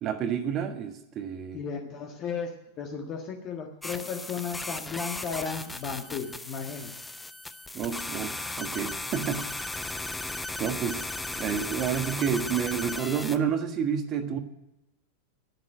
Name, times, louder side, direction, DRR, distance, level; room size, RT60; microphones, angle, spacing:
voice 1, 0.0-1.6 7.7-10.0 10.6-11.0 11.4-14.4, right 8 dB, 35° right, 7 dB, 1.5 m, -30 dB
voice 2, 1.5-2.5 2.8-6.9, left 6 dB, 35° left, 2 dB, 1.6 m, -34 dB
sound 1, 3.8-13.4, left 2 dB, 5° left, 0.8 m, -36 dB
11.5 x 10.0 x 8.7 m, 0.91 s
figure-of-eight pair, 90°, 0 cm